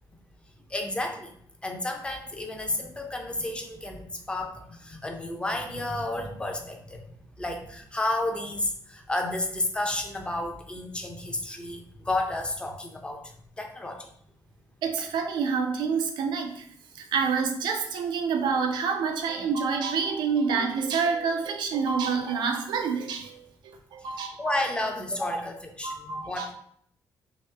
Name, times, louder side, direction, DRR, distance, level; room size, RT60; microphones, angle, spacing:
voice 1, 0.7-1.3 1.6-7.0 7.4-13.2 13.6-14.1 24.4-26.5, left 2 dB, 15° left, 3 dB, 0.5 m, -31 dB
voice 2, 14.8-16.6 17.0-24.6 25.8-26.5, right 5 dB, 85° right, 4 dB, 0.5 m, -28 dB
3.1 x 2.8 x 3.2 m, 0.66 s
cardioid pair, 115°, 8 cm